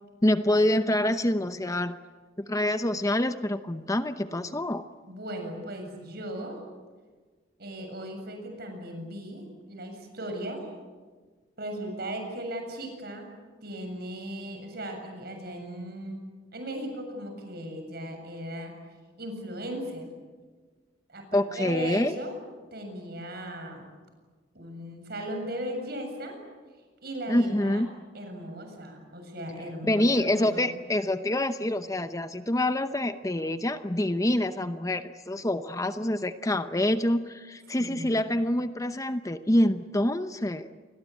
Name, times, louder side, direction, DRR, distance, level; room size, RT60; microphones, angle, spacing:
voice 1, 0.2-2.0 2.5-4.8 21.3-22.1 27.3-27.9 29.9-40.7, left 1 dB, 20° left, 10 dB, 0.8 m, -26 dB
voice 2, 5.1-6.6 7.6-10.7 11.6-13.3 13.6-16.2 16.5-18.7 19.2-20.1 21.1-22.4 22.7-23.9 24.5-26.4 27.0-27.8 28.1-30.5 37.8-38.2, equal, 55° right, 4 dB, 7.3 m, -37 dB
30.0 x 22.0 x 8.4 m, 1.4 s
head